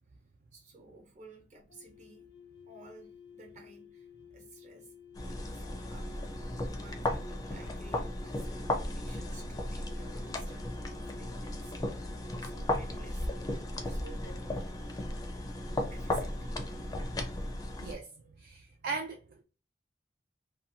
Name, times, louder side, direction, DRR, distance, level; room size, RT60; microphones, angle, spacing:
voice 1, 0.5-2.3 2.7-4.9 5.2-5.6 5.9-6.3 6.7-14.4 14.9-15.0 15.9-16.8, right 3 dB, 45° right, 0.9 m, -55 dB
sound 1, 1.7-14.4, left 9 dB, 75° left, 0.5 m, -55 dB
sound 2, 5.1-18.0, left 1 dB, 20° left, 0.4 m, -35 dB
voice 2, 17.8-18.1 18.4-19.4, right 4 dB, 60° right, 0.3 m, -38 dB
2.6 x 2.2 x 2.7 m
head